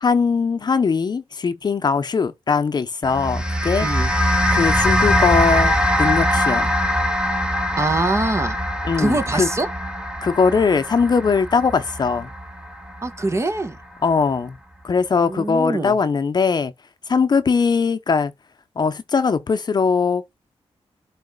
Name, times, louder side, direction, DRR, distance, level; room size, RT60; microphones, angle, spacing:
voice 1, 0.0-3.9 4.5-6.7 8.8-9.5 10.2-12.3 14.0-14.6 14.8-16.7 17.1-18.3 18.8-20.2, left 5 dB, 40° left, 0.8 m, -20 dB
sound 1, 3.0-13.6, equal, 10° right, 1.6 m, -22 dB
voice 2, 3.8-4.1 7.8-8.6 9.0-9.7 13.0-13.8 15.2-16.0, right 2 dB, 25° right, 1.4 m, -23 dB
12.0 x 4.2 x 2.3 m
wide cardioid pair, 135°, 11 cm